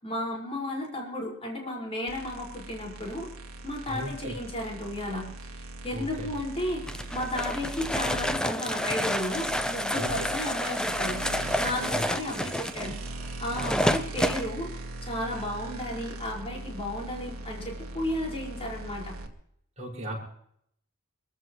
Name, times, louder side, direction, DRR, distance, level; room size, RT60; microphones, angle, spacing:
voice 1, 0.0-3.3 3.6-5.3 5.6-6.8 7.1-11.2 11.6-12.9 13.4-14.7 15.0-19.2, left 1 dB, 30° left, -2 dB, 5.5 m, -33 dB
sound 1, 2.1-19.3, right 2 dB, 75° right, 2.1 m, -40 dB
voice 2, 3.9-4.3 5.9-6.3 9.9-10.3 11.9-12.0 12.4-12.5 19.8-20.2, equal, 35° right, -3 dB, 6.1 m, -36 dB
sound 2, 6.9-14.4, equal, 5° left, 0.8 m, -29 dB
25.5 x 14.5 x 3.2 m, 0.69 s
head